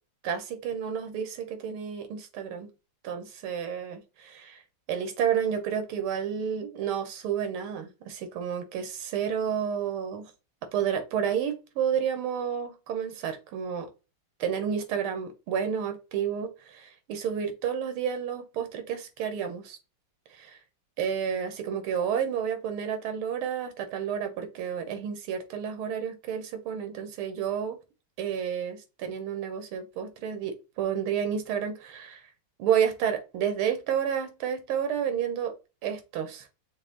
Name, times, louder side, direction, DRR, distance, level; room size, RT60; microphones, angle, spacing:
voice 1, 0.2-2.7 3.0-4.6 4.9-10.3 10.7-13.9 14.4-19.8 20.3-20.6 21.0-27.8 28.2-32.2 32.6-35.5 35.8-36.5, right 8 dB, 85° right, 1.8 m, -30 dB
6.0 x 2.1 x 3.8 m
omnidirectional pair, 2.3 m